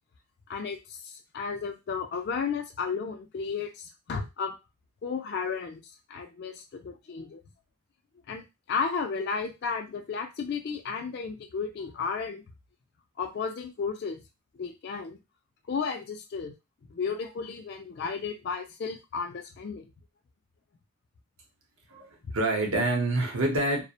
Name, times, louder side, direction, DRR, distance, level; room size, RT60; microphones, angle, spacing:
voice 1, 0.5-4.6 5.0-5.8 6.1-7.4 8.3-12.4 13.2-14.2 14.5-15.2 15.7-16.5 16.9-19.9 22.2-22.3, left 5 dB, 50° left, 4 dB, 0.3 m, -33 dB
voice 2, 21.9-23.8, right 2 dB, 70° right, 2 dB, 0.8 m, -27 dB
2.3 x 2.0 x 2.7 m, 0.25 s
head